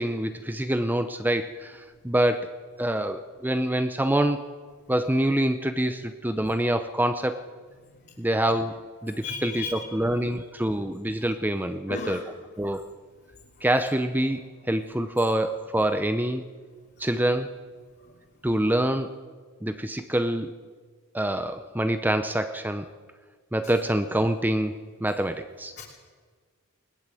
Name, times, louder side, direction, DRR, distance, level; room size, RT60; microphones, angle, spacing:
voice 1, 0.0-2.5 2.8-4.4 4.9-7.4 8.2-12.2 12.6-12.8 13.6-16.4 17.0-17.5 18.4-19.1 19.6-20.5 21.1-22.9 23.5-24.7 25.0-25.7, right 1 dB, 10° right, 9 dB, 0.7 m, -26 dB
voice 2, 9.2-9.8 11.9-12.2 25.8-25.9, left 4 dB, 50° left, -3 dB, 3.2 m, -33 dB
20.5 x 20.0 x 7.7 m, 1.5 s
head